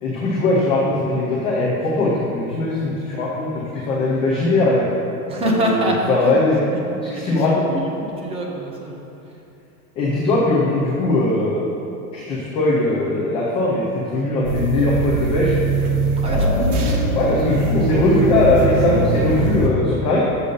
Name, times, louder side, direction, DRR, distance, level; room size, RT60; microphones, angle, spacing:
voice 1, 0.0-4.9 5.4-6.6 7.1-7.7 10.0-11.6 12.1-15.5 16.2-20.2, left 2 dB, 15° left, -5 dB, 0.4 m, -20 dB
voice 2, 5.3-6.4 7.1-7.9 8.2-9.0 16.2-16.7, right 1 dB, 15° right, -1 dB, 0.7 m, -25 dB
sound 1, 14.4-19.7, right 3 dB, 75° right, 1.4 m, -21 dB
6.8 x 6.4 x 5.2 m, 2.9 s
supercardioid pair, 155°, 45 cm